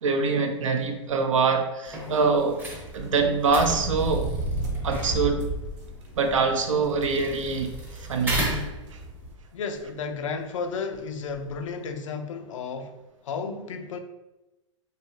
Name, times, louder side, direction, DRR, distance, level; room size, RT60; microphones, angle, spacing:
voice 1, 0.0-2.6 2.9-4.3 4.8-5.5 6.1-8.4 8.9-9.0, right 4 dB, 85° right, 0.5 m, -24 dB
sound 1, 1.8-9.3, right 1 dB, 10° right, 0.6 m, -36 dB
sound 2, 2.7-9.4 9.7-9.8 10.9-11.0 11.3-11.6, right 2 dB, 60° right, 0.8 m, -34 dB
voice 2, 9.5-13.0 13.2-14.0, left 5 dB, 80° left, 0.4 m, -33 dB
2.8 x 2.3 x 2.9 m
hypercardioid pair, 115°, 16 cm